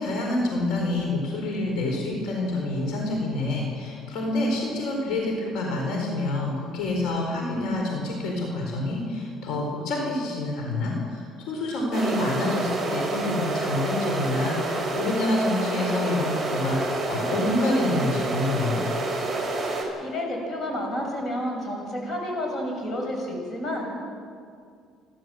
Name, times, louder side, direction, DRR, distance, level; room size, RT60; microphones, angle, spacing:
voice 1, 0.0-18.8, left 2 dB, 75° left, 0 dB, 4.3 m, -27 dB
sound 1, 11.9-19.8, right 2 dB, 20° right, 6.0 m, -28 dB
voice 2, 20.0-23.9, left 1 dB, 35° left, 1 dB, 7.1 m, -30 dB
30.0 x 12.5 x 7.7 m, 2.2 s
cardioid pair, 115°, 0 cm